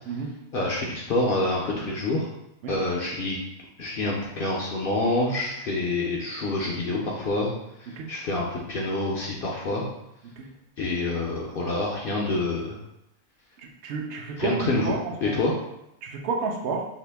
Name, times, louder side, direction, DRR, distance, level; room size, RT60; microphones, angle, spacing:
voice 1, 0.5-2.3 2.7-3.4 3.8-7.5 7.8-9.8 10.8-12.8 14.4-14.9 15.2-15.5, left 2 dB, 65° left, -3 dB, 0.6 m, -27 dB
voice 2, 13.8-15.4 16.0-16.9, right 4 dB, 60° right, 1 dB, 0.7 m, -31 dB
2.8 x 2.5 x 3.3 m, 0.86 s
omnidirectional pair, 1.3 m